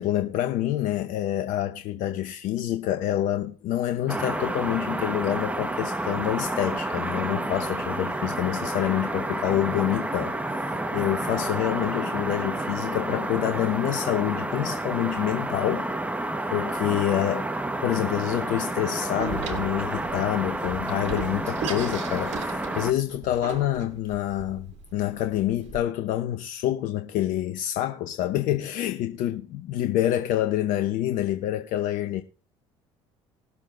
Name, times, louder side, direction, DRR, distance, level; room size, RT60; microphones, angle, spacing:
voice 1, 0.0-15.9 16.5-17.5 17.8-32.2, left 12 dB, 65° left, 0.8 m, -27 dB
sound 1, 4.1-22.9, right 1 dB, 10° right, 1.2 m, -30 dB
Door, 19.2-25.8, right 5 dB, 50° right, 2.3 m, -37 dB
20.0 x 7.0 x 2.6 m
hypercardioid pair, 65°, 15 cm